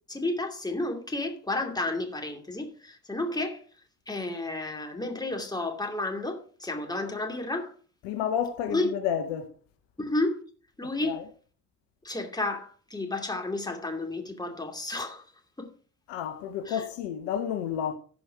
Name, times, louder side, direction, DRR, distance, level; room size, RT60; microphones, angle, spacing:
voice 1, 0.1-3.6 4.1-7.7 8.7-8.9 10.0-10.4 10.8-11.2 12.0-15.2 15.6-15.7 16.7-16.8, left 2 dB, 10° left, 2.6 m, -31 dB
voice 2, 8.0-9.5 11.0-11.2 16.1-17.9, left 9 dB, 65° left, 1.2 m, -30 dB
15.0 x 5.2 x 4.8 m
hypercardioid pair, 55°, 45 cm